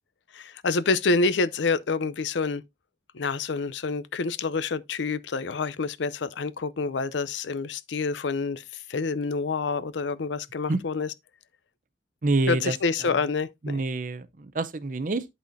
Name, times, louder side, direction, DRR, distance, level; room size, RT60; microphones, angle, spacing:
voice 1, 0.3-2.6 3.1-11.1 12.5-13.8, left 4 dB, 80° left, 0.5 m, -27 dB
voice 2, 12.2-13.2 13.6-15.3, right 2 dB, 45° right, 0.6 m, -27 dB
11.5 x 4.2 x 2.6 m
head